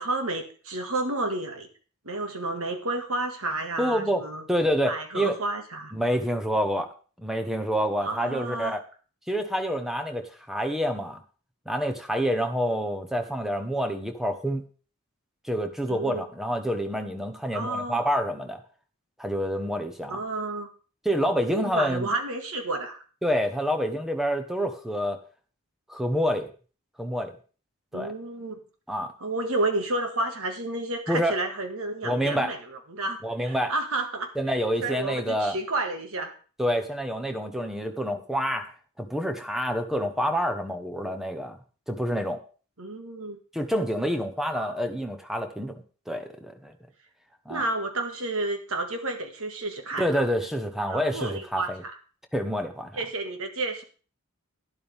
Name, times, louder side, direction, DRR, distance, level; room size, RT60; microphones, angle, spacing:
voice 1, 0.0-1.7 2.1-4.4 4.9-5.9 8.0-8.8 15.9-16.2 17.5-18.0 20.1-20.7 21.5-23.0 27.9-28.6 29.2-34.3 34.8-36.3 42.8-43.4 44.5-44.7 47.5-50.2 50.9-51.9 52.9-53.8, right 2 dB, 65° right, 5 dB, 1.9 m, -31 dB
voice 2, 3.8-4.2 4.5-5.4 5.9-6.9 7.2-8.8 9.3-11.2 11.7-14.6 15.4-18.6 19.2-20.2 21.0-22.1 23.2-25.2 25.9-26.5 27.0-27.3 27.9-28.1 28.9-29.1 31.1-31.4 32.0-32.5 33.2-33.7 34.4-35.6 36.6-38.7 39.0-41.6 41.9-42.4 43.5-46.7 47.5-47.6 50.0-51.8 52.3-52.9, equal, ahead, 6 dB, 1.1 m, -27 dB
12.0 x 10.5 x 3.5 m, 0.38 s
head